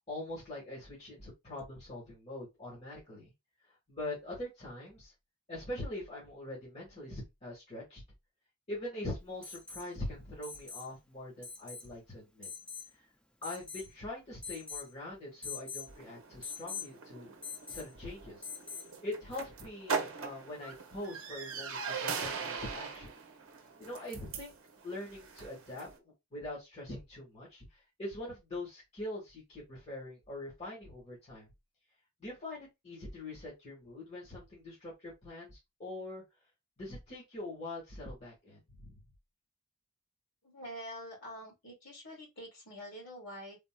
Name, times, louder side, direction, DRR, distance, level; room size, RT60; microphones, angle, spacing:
voice 1, 0.1-3.3 3.9-5.1 5.5-8.0 8.7-12.5 13.4-17.3 17.7-18.5 19.0-23.1 23.8-24.5 24.8-25.9 26.3-27.6 28.0-31.5 32.2-36.2 36.8-38.9, left 1 dB, 30° left, 1.5 m, -43 dB
Alarm, 9.4-9.9 10.4-10.9 11.4-11.9 12.4-12.9 13.4-13.9 14.4-14.9 15.4-15.9 16.4-16.9 17.4-17.9 18.4-18.9 20.7-20.8, left 6 dB, 5° left, 0.3 m, -43 dB
sound 1, 15.9-26.0, right 5 dB, 60° right, 0.7 m, -41 dB
voice 2, 40.4-43.6, equal, 55° left, 2.2 m, -46 dB
3.5 x 2.6 x 2.2 m
head